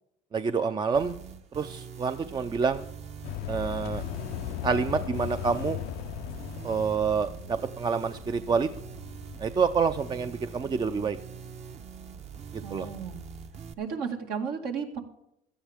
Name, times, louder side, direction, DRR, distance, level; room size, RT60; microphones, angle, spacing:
voice 1, 0.3-1.2 1.5-2.8 3.5-4.0 4.6-5.8 6.6-8.7 9.4-11.2 12.5-12.9, right 5 dB, 30° right, 10 dB, 0.6 m, -27 dB
sound 1, 0.9-13.7, right 6 dB, 45° right, 1.1 m, -43 dB
sound 2, 3.2-10.2, left 14 dB, 80° left, 0.5 m, -38 dB
voice 2, 12.6-13.2 13.8-15.0, right 6 dB, 75° right, 3 dB, 2.2 m, -33 dB
16.5 x 12.5 x 3.6 m, 0.78 s
cardioid pair, 105°, 16 cm